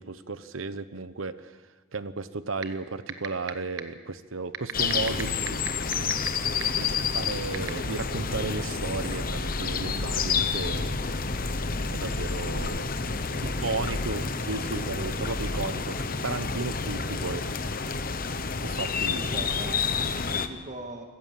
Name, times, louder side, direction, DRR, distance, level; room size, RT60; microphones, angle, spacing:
voice 1, 0.0-1.6 1.9-5.6 6.6-11.0 11.9-12.8 13.6-16.0 16.2-17.4 18.6-19.2, right 3 dB, 85° right, 13 dB, 1.0 m, -34 dB
sound 1, 2.6-2.7 3.1-3.5 3.8-3.9 4.5-6.3 6.6-6.7 7.5-7.7, right 8 dB, 65° right, 1.3 m, -30 dB
sound 2, 4.7-20.5, left 5 dB, 45° left, 1.0 m, -29 dB
voice 2, 13.0-14.3 19.0-21.1, right 1 dB, 35° right, 2 dB, 1.9 m, -43 dB
25.5 x 14.0 x 7.6 m, 1.3 s
head